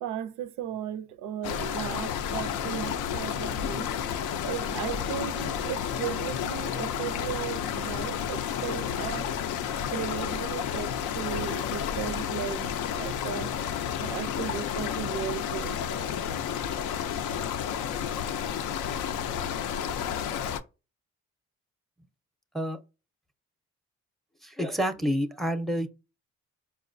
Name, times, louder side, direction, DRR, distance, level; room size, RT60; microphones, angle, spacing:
voice 1, 0.0-3.9 4.4-9.3 9.9-13.5 14.0-15.8, right 9 dB, 90° right, 0.5 m, -36 dB
sound 1, 1.4-20.6, left 8 dB, 90° left, 0.5 m, -31 dB
voice 2, 24.4-25.9, equal, ahead, 0.5 m, -28 dB
4.8 x 2.1 x 2.5 m
cardioid pair, 90°, 30 cm